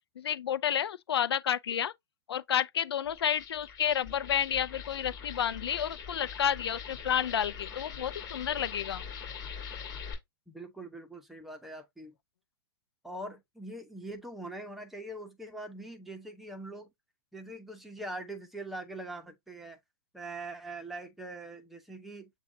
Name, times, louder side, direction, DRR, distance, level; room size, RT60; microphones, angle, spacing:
voice 1, 0.2-1.9 2.3-9.0, left 9 dB, 80° left, 0.5 m, -30 dB
sound 1, 3.1-10.1, left 7 dB, 30° left, 2.9 m, -43 dB
voice 2, 10.5-12.1 13.0-16.9 17.3-19.8 20.1-22.3, right 2 dB, ahead, 0.9 m, -42 dB
6.9 x 2.4 x 2.6 m
hypercardioid pair, 130°, 13 cm